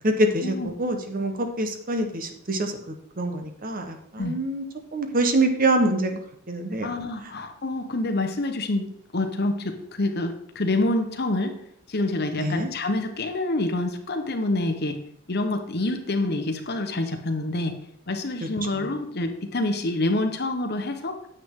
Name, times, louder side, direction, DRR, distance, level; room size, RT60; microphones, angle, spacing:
voice 1, 0.0-4.6 4.9-6.2 6.5-6.9 12.4-12.7 18.4-18.5, right 1 dB, 40° right, 5 dB, 1.1 m, -25 dB
voice 2, 6.8-11.6 11.9-15.0 15.3-17.7 18.1-21.2, left 2 dB, 45° left, 6 dB, 1.1 m, -27 dB
9.4 x 8.0 x 3.7 m, 0.69 s
head